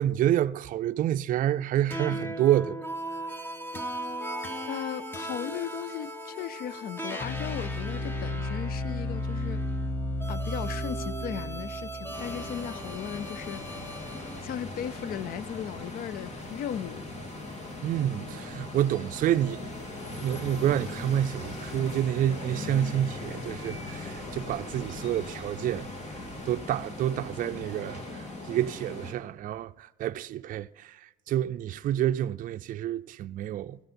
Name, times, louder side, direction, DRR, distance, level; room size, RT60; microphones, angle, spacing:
voice 1, 0.0-2.8 17.8-19.7 20.1-25.9 26.5-33.8, right 11 dB, 55° right, 0.4 m, -28 dB
sound 1, 1.9-14.4, left 1 dB, 10° left, 1.3 m, -34 dB
voice 2, 4.7-9.6 10.3-14.1 14.4-17.2, left 9 dB, 60° left, 0.5 m, -37 dB
sound 2, 12.1-29.1, left 2 dB, 40° left, 2.6 m, -39 dB
16.0 x 13.5 x 4.3 m
cardioid pair, 110°, 17 cm